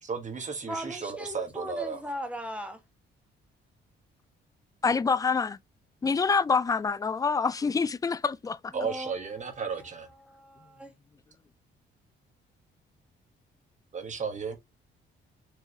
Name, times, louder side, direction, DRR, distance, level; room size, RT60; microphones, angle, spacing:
voice 1, 0.0-2.0 8.7-10.1 13.9-14.6, right 5 dB, 35° right, 1.4 m, -34 dB
voice 2, 0.7-2.8 8.7-10.9, equal, 5° right, 1.3 m, -39 dB
voice 3, 4.8-5.6 6.0-8.7, left 5 dB, 20° left, 0.3 m, -26 dB
4.7 x 3.1 x 2.8 m
cardioid pair, 90°, 20 cm